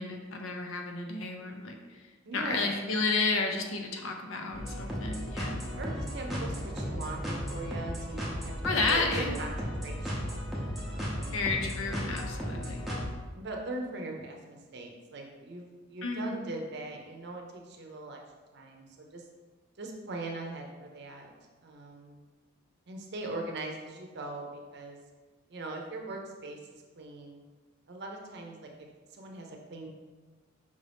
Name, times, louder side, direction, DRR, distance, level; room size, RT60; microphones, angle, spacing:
voice 1, 0.0-1.8 2.3-5.6 8.6-9.4 11.3-12.9 16.0-16.4, left 3 dB, 80° left, 3 dB, 0.6 m, -31 dB
voice 2, 2.2-2.8 5.7-9.5 9.8-10.4 11.1-11.7 13.3-18.2 18.5-19.2 19.8-21.3 21.6-22.2 22.9-25.0 25.5-27.4 27.9-28.7 29.1-29.9, right 2 dB, 55° right, 1 dB, 0.6 m, -40 dB
sound 1, 4.5-13.1, equal, ahead, 0.6 m, -35 dB
5.2 x 2.6 x 3.4 m, 1.3 s
head